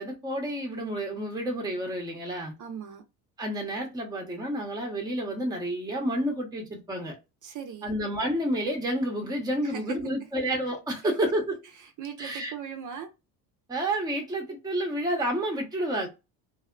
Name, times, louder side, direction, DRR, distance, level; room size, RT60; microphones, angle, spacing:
voice 1, 0.0-2.5 3.4-7.1 7.8-11.6 12.2-12.5 13.7-16.1, right 1 dB, 10° right, 0.8 m, -30 dB
voice 2, 2.6-3.0 7.4-7.9 9.6-9.8 12.0-13.1, right 7 dB, 45° right, 0.6 m, -38 dB
2.7 x 2.0 x 2.4 m
supercardioid pair, 85°, 42 cm